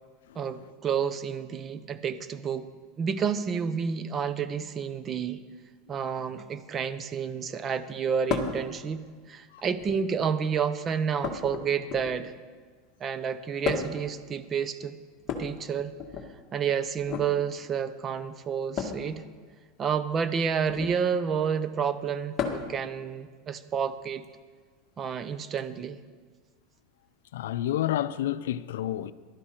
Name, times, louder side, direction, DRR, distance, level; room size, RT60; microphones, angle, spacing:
voice 1, 0.3-2.7 3.0-5.4 5.9-12.3 13.0-15.0 15.4-15.9 16.5-19.2 19.8-24.2 25.0-26.0, right 7 dB, 30° right, 0.7 m, -30 dB
sound 1, 8.3-8.6 9.7-10.2 11.2-12.3 13.6-14.1 15.2-16.3 17.0-17.3 18.7-19.1 20.6-21.0 22.4-22.8 24.2-24.3 25.6-25.7, left 6 dB, 35° left, 1.7 m, -33 dB
voice 2, 27.3-29.1, left 12 dB, 85° left, 0.5 m, -30 dB
14.5 x 12.0 x 4.4 m
supercardioid pair, 125°, 0 cm